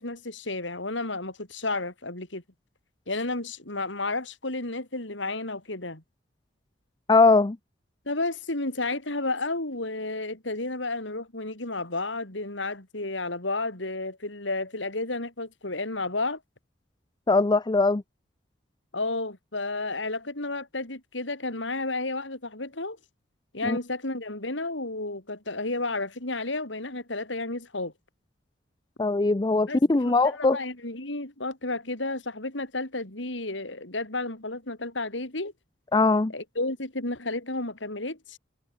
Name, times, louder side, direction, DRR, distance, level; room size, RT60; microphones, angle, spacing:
voice 1, 0.0-2.4 3.1-6.0 8.0-16.4 18.9-23.0 23.5-27.9 29.7-35.5 36.3-38.4, left 2 dB, 70° left, 4.9 m, -32 dB
voice 2, 7.1-7.6 17.3-18.0 23.6-23.8 29.0-30.6 35.9-36.3, left 3 dB, 25° left, 0.5 m, -21 dB
head